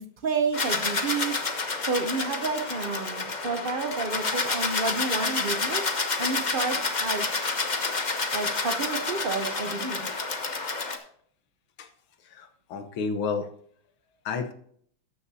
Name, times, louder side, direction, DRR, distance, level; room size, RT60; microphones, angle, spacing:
voice 1, 0.0-1.4 1.8-5.9 6.2-7.3 8.3-10.1, right 4 dB, 65° right, 7 dB, 0.5 m, -30 dB
sound 1, 0.5-11.0, left 3 dB, 30° left, 0.9 m, -29 dB
voice 2, 12.3-13.5 14.3-14.5, left 5 dB, 85° left, 9 dB, 1.9 m, -31 dB
13.5 x 10.0 x 2.8 m, 0.62 s
omnidirectional pair, 2.2 m